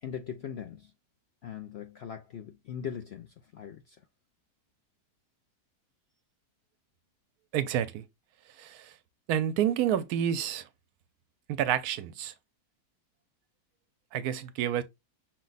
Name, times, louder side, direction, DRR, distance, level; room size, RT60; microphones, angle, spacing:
voice 1, 0.0-0.9 1.4-4.0, left 8 dB, 65° left, 0.6 m, -40 dB
voice 2, 7.5-8.0 8.6-8.9 9.3-10.7 11.5-12.3 14.1-14.8, right 10 dB, 80° right, 1.1 m, -29 dB
6.1 x 2.1 x 3.9 m
omnidirectional pair, 1.7 m